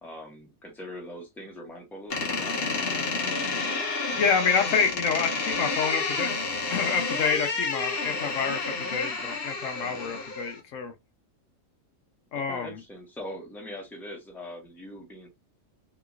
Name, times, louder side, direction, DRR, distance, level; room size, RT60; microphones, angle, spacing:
voice 1, 0.0-2.6 9.0-9.3 12.3-15.3, left 1 dB, ahead, 0.9 m, -41 dB
Door, 2.1-10.6, left 3 dB, 50° left, 1.0 m, -30 dB
voice 2, 4.1-6.4 6.7-10.9 12.3-12.7, left 6 dB, 70° left, 1.0 m, -28 dB
3.0 x 2.9 x 2.4 m
omnidirectional pair, 1.4 m